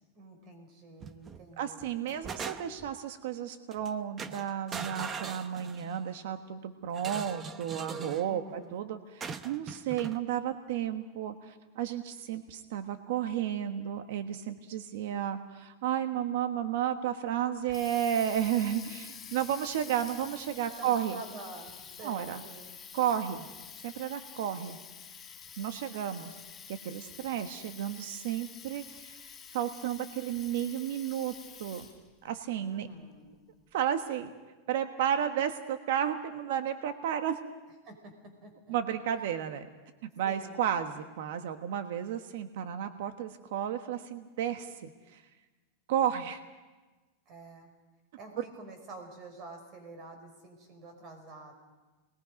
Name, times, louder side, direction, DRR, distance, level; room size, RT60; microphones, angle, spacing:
voice 1, 0.1-1.9 8.2-8.8 20.8-22.8 32.6-33.4 37.8-38.8 40.2-40.7 47.3-47.7 48.2-51.5, right 3 dB, 40° right, 4 dB, 5.9 m, -48 dB
sound 1, 1.0-1.4 1.8-2.9 3.7-3.9 4.2-6.0 6.9-8.3 9.2-10.2, right 5 dB, 20° right, 0.8 m, -41 dB
voice 2, 1.6-21.2 22.0-22.4 22.9-23.5 23.8-24.8 25.6-26.4 26.7-31.3 31.6-31.8 32.2-32.9 33.7-34.3 34.7-37.4 38.7-39.7 40.0-45.2 45.9-46.4 48.4-48.5, right 10 dB, 70° right, 7 dB, 1.3 m, -32 dB
Water tap faucet, 17.4-32.1, left 7 dB, 20° left, 4.6 m, -48 dB
28.0 x 21.0 x 5.3 m, 1.2 s
supercardioid pair, 145°, 0 cm